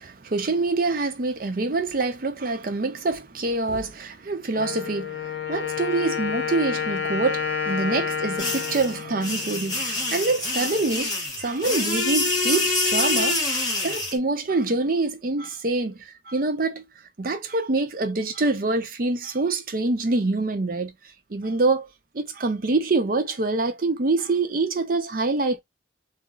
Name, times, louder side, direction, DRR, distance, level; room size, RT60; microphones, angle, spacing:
voice 1, 0.0-16.8 17.2-20.9 21.3-21.9 22.1-25.6, right 3 dB, 50° right, 0.6 m, -25 dB
Wind instrument woodwind instrument, 4.5-10.3, left 7 dB, 65° left, 0.7 m, -30 dB
sound 1, 8.4-14.1, left 2 dB, 20° left, 1.1 m, -26 dB
2.4 x 2.0 x 3.8 m
head